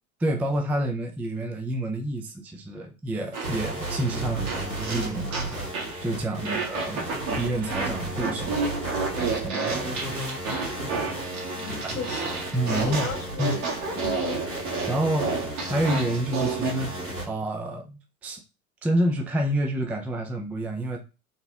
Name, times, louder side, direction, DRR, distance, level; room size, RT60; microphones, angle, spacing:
voice 1, 0.2-5.6 6.0-7.1 7.4-8.6 9.2-10.3 11.8-12.0 12.5-13.1 13.4-13.6 14.9-16.9 17.2-18.4 18.8-21.0, right 1 dB, 5° right, 0.4 m, -28 dB
Fart, 3.3-6.0 6.4-16.8, right 4 dB, 40° right, 1.9 m, -31 dB
sound 1, 3.4-17.2, right 1 dB, 80° right, 2.1 m, -34 dB
voice 2, 11.6-12.3 12.7-14.4, left 5 dB, 30° left, 1.2 m, -36 dB
3.9 x 3.7 x 3.5 m
figure-of-eight pair, 80°, 43 cm